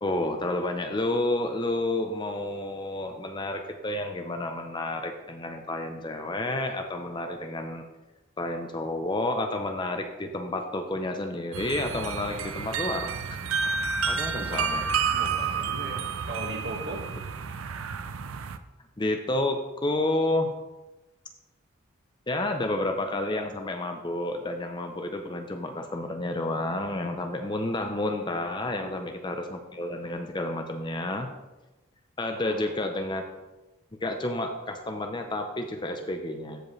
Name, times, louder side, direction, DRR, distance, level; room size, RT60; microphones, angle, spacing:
voice 1, 0.0-7.9 8.4-13.1 14.1-14.8 19.0-20.5 22.3-31.3 32.2-33.2 34.0-36.6, left 2 dB, 20° left, 5 dB, 0.5 m, -30 dB
sound 1, 11.5-18.6, right 6 dB, 70° right, 0.5 m, -30 dB
voice 2, 14.3-14.8 15.1-17.0 28.8-29.1 32.3-32.7, right 1 dB, 50° right, 1 dB, 1.6 m, -39 dB
14.0 x 5.2 x 3.2 m, 1.0 s
head